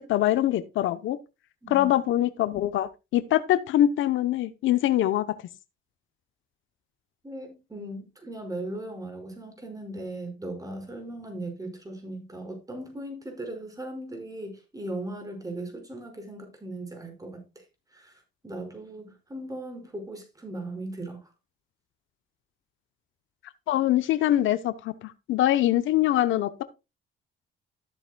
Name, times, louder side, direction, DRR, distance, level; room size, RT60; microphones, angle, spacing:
voice 1, 0.1-1.2 1.7-5.2 23.7-26.6, left 13 dB, 80° left, 0.9 m, -23 dB
voice 2, 7.2-17.7 17.9-21.3, right 1 dB, 15° right, 5.4 m, -38 dB
14.0 x 7.9 x 2.3 m
cardioid pair, 90°, 20 cm